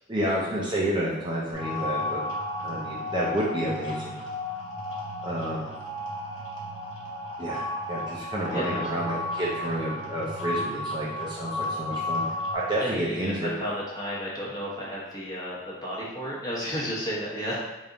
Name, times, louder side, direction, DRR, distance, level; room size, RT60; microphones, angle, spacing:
voice 1, 0.1-2.2 2.6-4.2 5.2-5.7 7.4-12.2 12.5-13.5, right 1 dB, 20° right, -6 dB, 0.5 m, -30 dB
sound 1, 1.5-12.5, left 2 dB, 65° left, 1.1 m, -33 dB
voice 2, 8.5-9.1 12.8-17.6, equal, 20° left, -7 dB, 1.0 m, -33 dB
3.4 x 2.6 x 3.8 m, 1.1 s
head